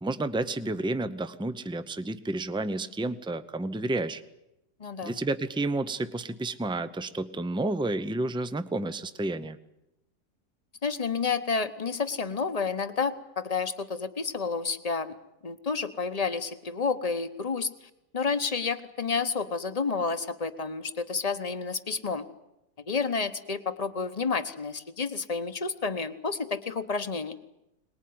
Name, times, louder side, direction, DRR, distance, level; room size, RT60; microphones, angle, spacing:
voice 1, 0.0-4.2 5.0-9.6, right 2 dB, 5° right, 12 dB, 0.5 m, -30 dB
voice 2, 4.8-5.2 10.8-15.1 15.4-17.7 18.1-22.3 22.9-27.3, left 5 dB, 25° left, 10 dB, 1.0 m, -30 dB
23.0 x 20.0 x 9.5 m, 0.89 s
omnidirectional pair, 1.7 m